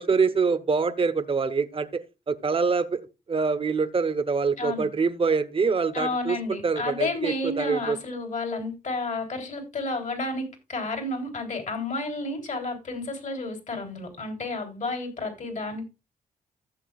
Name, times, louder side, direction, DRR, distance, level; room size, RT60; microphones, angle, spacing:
voice 1, 0.0-1.9 2.3-3.0 3.3-8.0, right 5 dB, 35° right, 1.0 m, -25 dB
voice 2, 4.6-4.9 5.9-15.9, left 2 dB, 55° left, 3.4 m, -31 dB
15.0 x 7.0 x 2.4 m
supercardioid pair, 55°, 15 cm